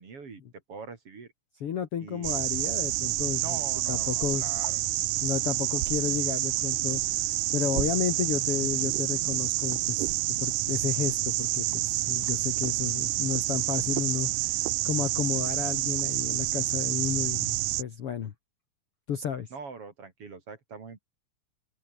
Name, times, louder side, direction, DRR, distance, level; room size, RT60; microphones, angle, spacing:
voice 1, 0.0-1.3 2.0-2.4 3.3-4.8 19.5-21.0, right 4 dB, 40° right, 3.7 m, -43 dB
voice 2, 1.6-3.6 3.9-4.5 5.2-7.0 7.5-10.1 10.4-18.3 19.1-19.5, left 8 dB, 55° left, 1.8 m, -32 dB
sound 1, 2.2-17.8, right 16 dB, 70° right, 2.2 m, -28 dB
open air
omnidirectional pair, 4.2 m